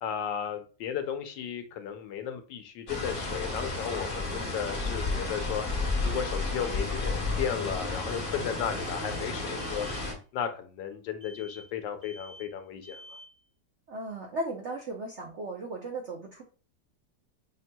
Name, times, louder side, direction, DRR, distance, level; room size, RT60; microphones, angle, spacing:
voice 1, 0.0-5.6 6.0-9.9 10.3-13.0, left 8 dB, 85° left, 7 dB, 1.3 m, -34 dB
sound 1, 2.9-10.1, left 3 dB, 40° left, 1.0 m, -32 dB
sound 2, 4.7-5.2 5.5-6.0 6.3-6.8 7.9-8.4 8.7-9.2 9.6-10.1 11.2-11.8 12.0-12.6 12.8-13.4, equal, 55° right, 1.9 m, -52 dB
voice 2, 13.9-16.4, right 2 dB, 70° right, 1 dB, 0.6 m, -36 dB
6.0 x 2.7 x 2.2 m, 0.36 s
omnidirectional pair, 1.9 m